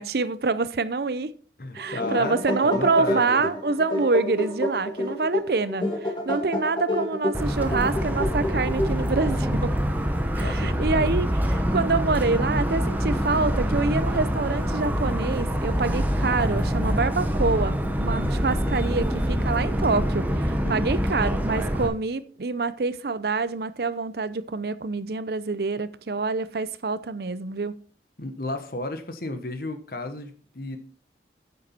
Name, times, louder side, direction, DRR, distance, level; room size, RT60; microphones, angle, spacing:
voice 1, 0.0-1.3 1.7-9.7 10.4-11.3 11.5-27.8, right 3 dB, 60° right, 0.6 m, -26 dB
voice 2, 1.6-3.4 10.4-11.1 20.6-21.0 28.2-30.8, left 2 dB, 55° left, 1.3 m, -33 dB
sound 1, 1.8-9.4, left 1 dB, 25° left, 2.2 m, -29 dB
Motor vehicle (road) / Siren, 7.3-21.9, equal, 10° right, 1.0 m, -25 dB
sound 2, 9.0-16.3 17.0-19.5, right 1 dB, 35° right, 1.1 m, -41 dB
9.7 x 7.6 x 4.3 m
head